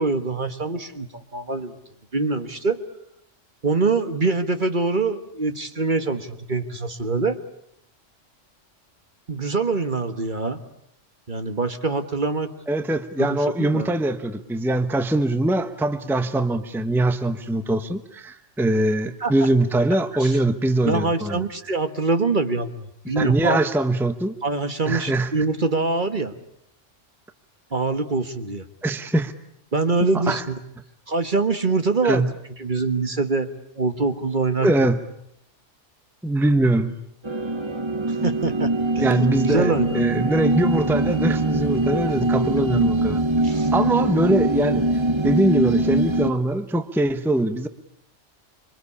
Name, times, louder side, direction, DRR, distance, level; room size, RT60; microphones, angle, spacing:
voice 1, 0.0-1.8 2.1-2.8 3.6-7.4 9.3-10.6 11.3-12.5 13.2-13.3 13.6-13.9 19.2-19.3 20.1-20.4 20.8-23.6 24.4-26.3 27.7-28.6 29.7-30.5 31.1-32.3 32.6-33.5 33.8-34.9 38.1-40.3 43.4-43.7, right 3 dB, 40° right, 9 dB, 1.5 m, -24 dB
voice 2, 12.7-21.4 23.2-24.3 24.9-25.3 28.8-29.3 30.1-30.4 32.0-32.3 34.6-35.0 36.2-36.9 39.0-43.2 43.7-44.8 45.2-47.7, right 1 dB, ahead, 10 dB, 1.0 m, -22 dB
sound 1, 37.2-46.3, right 1 dB, 25° right, 1.3 m, -22 dB
26.5 x 24.5 x 8.5 m, 0.72 s
omnidirectional pair, 1.3 m